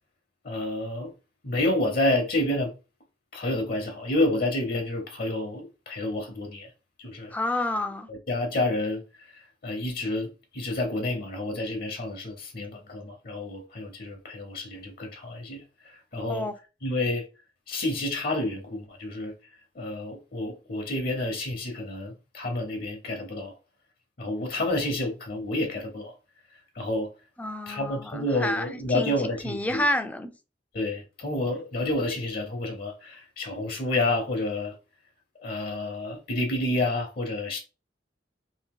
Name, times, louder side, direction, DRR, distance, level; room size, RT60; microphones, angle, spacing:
voice 1, 0.4-1.1 1.4-2.7 3.3-6.7 7.0-7.3 8.1-9.0 9.6-10.3 10.5-15.6 16.1-16.5 16.8-17.3 17.7-19.3 19.8-23.5 24.2-26.1 26.8-27.1 27.7-29.8 30.7-34.7 35.4-37.6, left 1 dB, 55° left, 0.7 m, -29 dB
voice 2, 7.3-8.1 16.3-16.5 27.4-29.1 29.4-30.3, left 1 dB, 10° left, 0.4 m, -29 dB
2.8 x 2.6 x 3.6 m
head